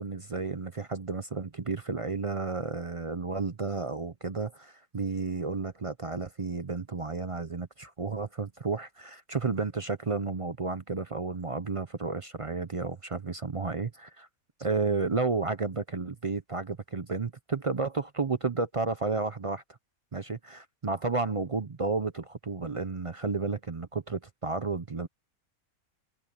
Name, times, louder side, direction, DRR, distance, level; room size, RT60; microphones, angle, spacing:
voice 1, 0.0-14.3 14.6-19.6 20.1-25.1, right 4 dB, 40° right, 0.5 m, -32 dB
omnidirectional pair, 1.5 m